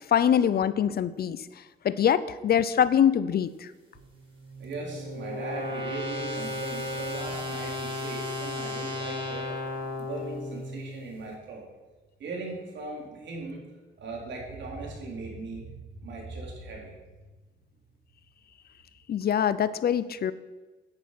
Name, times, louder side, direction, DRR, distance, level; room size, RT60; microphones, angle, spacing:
voice 1, 0.1-1.4 1.8-3.7 19.1-20.3, left 9 dB, 50° left, 16 dB, 0.6 m, -24 dB
sound 1, 3.9-11.1, left 1 dB, 25° right, 4.2 m, -34 dB
voice 2, 4.6-9.5 10.0-11.6 12.2-13.6 14.0-17.0, right 3 dB, 65° right, -2 dB, 4.2 m, -39 dB
9.8 x 9.4 x 6.0 m, 1.2 s
cardioid pair, 90°, 20 cm